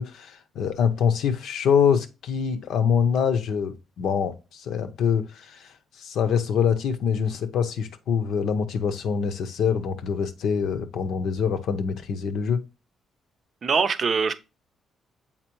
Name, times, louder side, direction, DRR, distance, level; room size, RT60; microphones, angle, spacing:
voice 1, 0.0-5.6 6.0-12.6, left 7 dB, 75° left, 0.7 m, -25 dB
voice 2, 13.6-14.4, right 5 dB, 50° right, 0.5 m, -23 dB
7.3 x 4.3 x 3.0 m
cardioid pair, 90°, 0 cm